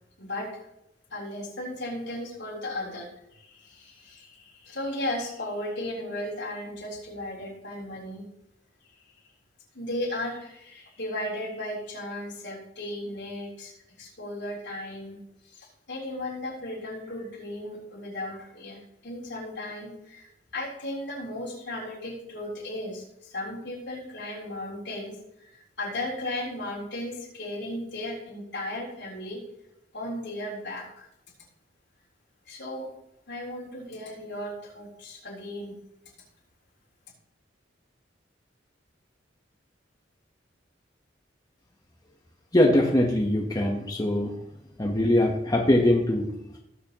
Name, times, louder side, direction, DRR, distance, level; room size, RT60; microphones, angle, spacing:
voice 1, 0.2-0.6 1.1-8.2 9.7-15.2 15.4-29.4 29.9-31.1 32.5-32.9 33.3-35.8, left 1 dB, 65° left, -4 dB, 3.6 m, -36 dB
voice 2, 42.5-44.3 44.8-46.6, left 1 dB, 20° left, 0 dB, 1.0 m, -22 dB
18.0 x 6.9 x 3.0 m, 0.83 s
head